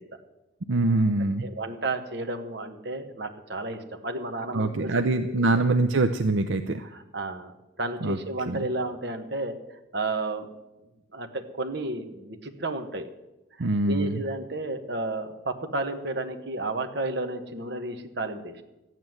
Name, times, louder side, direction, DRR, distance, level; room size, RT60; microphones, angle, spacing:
voice 1, 0.7-1.5 4.5-6.8 8.0-8.2 8.5-8.7 13.6-14.2, right 2 dB, 75° right, 8 dB, 0.6 m, -24 dB
voice 2, 1.2-5.1 5.5-5.6 6.8-10.5 11.1-13.1 13.6-18.6, right 2 dB, 55° right, 6 dB, 1.4 m, -32 dB
14.0 x 9.3 x 7.8 m, 0.97 s
head